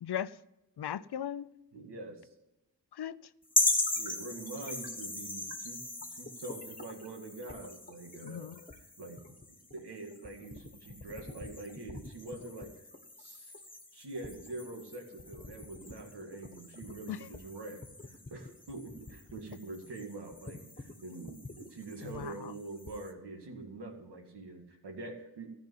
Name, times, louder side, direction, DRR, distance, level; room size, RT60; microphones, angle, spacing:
voice 1, 0.0-0.4 0.8-1.5 2.9-3.3 8.2-8.6 17.1-17.3 22.0-22.5, left 9 dB, 75° left, 0.6 m, -38 dB
voice 2, 1.7-2.3 4.0-5.8 6.1-8.5 9.0-12.8 13.2-13.5 13.9-25.5, right 2 dB, 90° right, 2.0 m, -45 dB
sound 1, 3.5-23.1, left 2 dB, 20° left, 1.5 m, -39 dB
14.0 x 5.3 x 9.3 m
cardioid pair, 55°, 39 cm